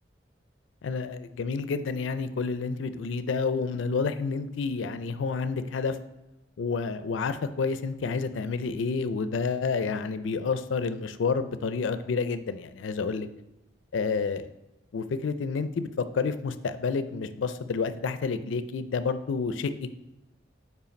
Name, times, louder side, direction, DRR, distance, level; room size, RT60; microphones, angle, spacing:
voice 1, 0.8-6.0 6.6-13.3 13.9-14.5 14.9-15.9 16.1-19.9, left 4 dB, 80° left, 12 dB, 0.4 m, -29 dB
5.7 x 4.7 x 5.1 m, 0.92 s
head